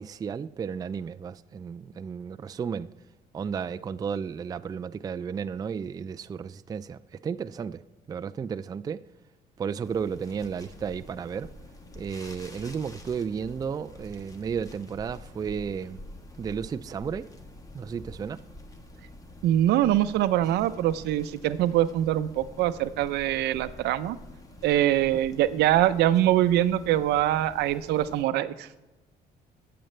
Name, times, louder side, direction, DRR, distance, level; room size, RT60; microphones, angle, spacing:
voice 1, 0.0-2.9 3.3-7.8 8.1-9.0 9.6-11.5 11.9-16.0 16.4-17.3 17.7-18.4, right 6 dB, 20° right, 0.3 m, -33 dB
sound 1, 9.8-28.2, left 1 dB, 20° left, 1.3 m, -47 dB
voice 2, 19.4-24.2 24.6-28.9, right 13 dB, 80° right, 0.6 m, -24 dB
19.0 x 7.8 x 3.3 m
cardioid pair, 110°, 17 cm